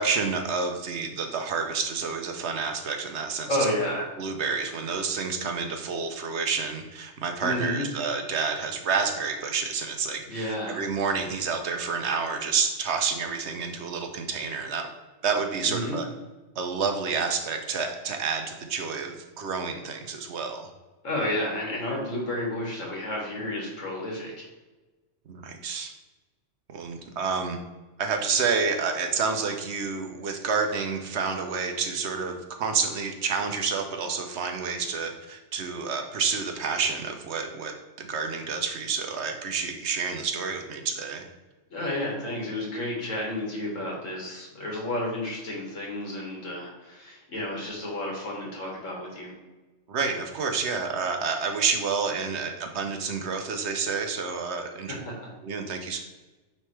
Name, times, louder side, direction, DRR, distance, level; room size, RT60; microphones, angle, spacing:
voice 1, 0.0-3.5 4.2-14.9 15.2-16.1 16.6-20.7 25.3-25.9 26.7-27.6 28.0-41.2 49.9-54.9 55.4-56.0, right 5 dB, 65° right, 5 dB, 1.0 m, -29 dB
voice 2, 3.5-4.0 7.4-7.9 10.3-10.8 15.6-16.0 21.0-24.4 41.7-49.3 54.9-55.1, left 1 dB, 90° left, -2 dB, 2.1 m, -31 dB
9.0 x 3.3 x 3.2 m, 1.2 s
omnidirectional pair, 1.3 m